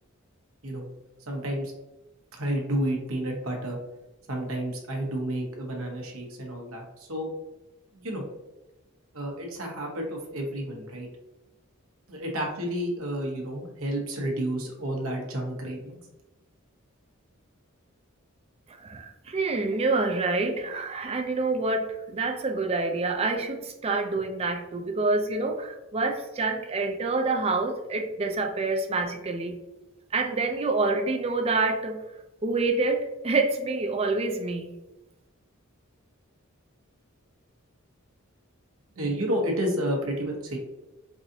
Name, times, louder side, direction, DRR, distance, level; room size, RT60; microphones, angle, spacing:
voice 1, 1.3-1.7 2.3-3.8 4.3-7.3 7.9-8.2 9.1-11.1 12.1-16.0 38.9-40.6, right 1 dB, 80° right, 1 dB, 1.0 m, -30 dB
voice 2, 18.9-29.5 30.1-32.0 32.4-34.7, right 3 dB, 30° right, 5 dB, 0.4 m, -27 dB
4.7 x 2.6 x 2.7 m, 1.0 s
head